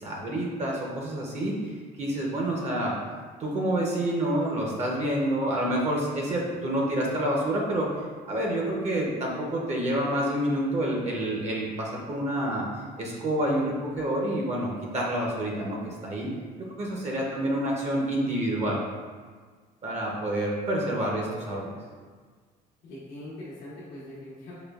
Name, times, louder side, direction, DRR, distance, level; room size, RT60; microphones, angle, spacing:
voice 1, 0.0-3.0 3.4-7.9 8.3-12.6 13.0-16.3 16.7-18.8 19.8-21.7, right 1 dB, 40° right, -2 dB, 0.6 m, -28 dB
voice 2, 22.8-24.5, left 1 dB, 85° left, -8 dB, 0.8 m, -42 dB
4.9 x 2.2 x 2.3 m, 1.5 s
cardioid pair, 110°, 17 cm